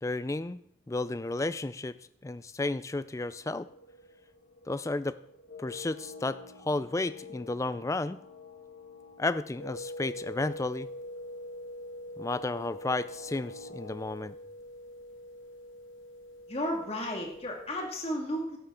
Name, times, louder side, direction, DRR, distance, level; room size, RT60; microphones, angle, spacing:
voice 1, 0.0-2.0 2.2-3.7 4.7-5.2 5.6-8.2 9.2-10.9 12.2-14.3, left 2 dB, 15° left, 15 dB, 0.3 m, -32 dB
sound 1, 3.1-14.0, left 4 dB, 60° left, 1.6 m, -51 dB
sound 2, 9.6-17.9, left 1 dB, 85° left, 1.5 m, -44 dB
voice 2, 16.5-18.6, equal, 30° left, 1 dB, 2.2 m, -33 dB
12.5 x 11.5 x 3.8 m, 0.68 s
head